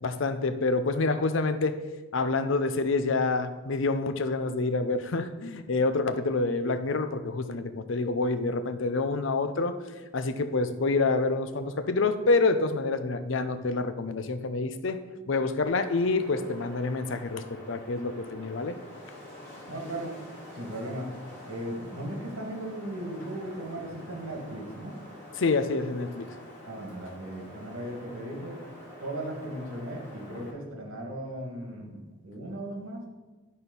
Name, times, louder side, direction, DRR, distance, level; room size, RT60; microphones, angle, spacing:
voice 1, 0.0-1.8 2.1-9.7 10.1-15.0 15.3-18.7 25.4-26.3, left 3 dB, 65° left, 10 dB, 0.6 m, -27 dB
Wind, 15.7-30.5, left 1 dB, 10° left, 2.5 m, -47 dB
voice 2, 19.7-20.2 20.5-21.1 21.4-25.0 26.6-28.6 29.0-33.0, right 1 dB, 75° right, 1 dB, 1.8 m, -37 dB
10.5 x 4.3 x 5.3 m, 1.2 s
head